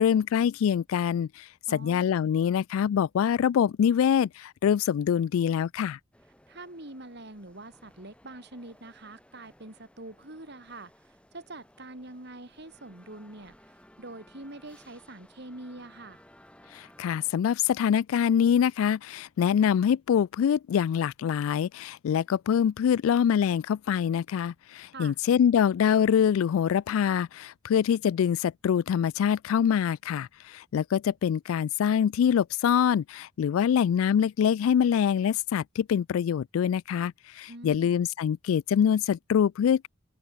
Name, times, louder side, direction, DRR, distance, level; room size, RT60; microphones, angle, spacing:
voice 1, 0.0-6.0 16.7-39.9, left 8 dB, 80° left, 0.3 m, -25 dB
voice 2, 1.7-2.1 6.5-16.2 24.9-25.2 37.5-37.9, right 2 dB, 55° right, 3.3 m, -45 dB
sound 1, 6.1-17.3, left 1 dB, 5° left, 5.4 m, -58 dB
open air
head